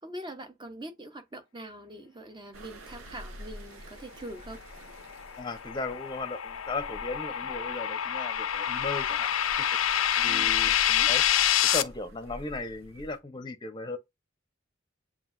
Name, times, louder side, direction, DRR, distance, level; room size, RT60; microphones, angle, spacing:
voice 1, 0.0-4.6 10.1-11.1, right 1 dB, 20° right, 0.8 m, -43 dB
sound 1, 2.5-13.2, equal, 85° right, 0.9 m, -48 dB
sound 2, 5.0-11.8, left 10 dB, 75° left, 0.5 m, -27 dB
voice 2, 5.4-9.3 10.2-10.7 11.1-11.2 11.7-14.0, left 3 dB, 20° left, 0.7 m, -36 dB
7.6 x 2.6 x 2.5 m
head